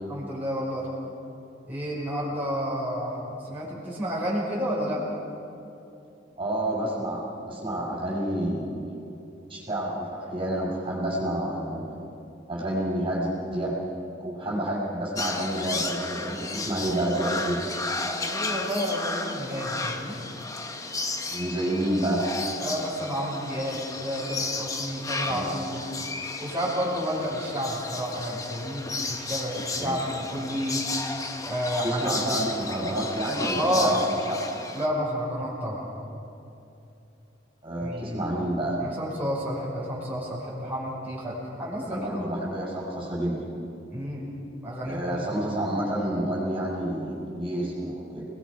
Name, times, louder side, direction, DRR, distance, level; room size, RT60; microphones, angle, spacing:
voice 1, 0.1-0.9 1.7-5.0 18.0-20.1 22.6-25.8 26.4-30.8 31.5-32.4 33.6-34.0 34.7-35.9 37.8-38.2 38.8-42.1 43.9-44.3 44.6-45.3, equal, 10° right, -7 dB, 6.0 m, -30 dB
voice 2, 6.4-8.9 9.5-12.0 12.5-13.8 14.2-17.6 21.3-22.2 25.3-25.5 29.8-29.9 31.8-34.4 37.6-38.8 41.9-43.5 44.9-48.3, right 1 dB, 30° right, -5 dB, 5.9 m, -29 dB
sound 1, 15.1-34.9, left 3 dB, 20° left, 1.3 m, -33 dB
29.5 x 20.5 x 5.3 m, 2.7 s
head